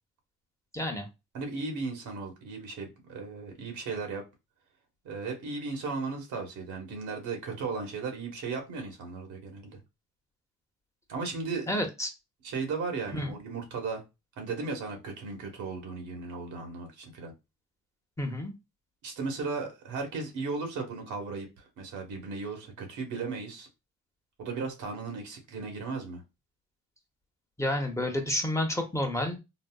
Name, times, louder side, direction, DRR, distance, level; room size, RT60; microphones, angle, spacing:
voice 1, 0.7-1.1 11.7-12.1 13.1-13.4 18.2-18.5 27.6-29.4, left 1 dB, 10° left, 3 dB, 0.7 m, -30 dB
voice 2, 1.3-4.2 5.0-9.8 11.1-11.8 12.4-14.0 14.4-17.3 19.0-23.7 24.4-26.2, right 4 dB, 80° right, 3 dB, 1.1 m, -36 dB
3.9 x 2.1 x 2.2 m, 0.25 s
cardioid pair, 90°, 30 cm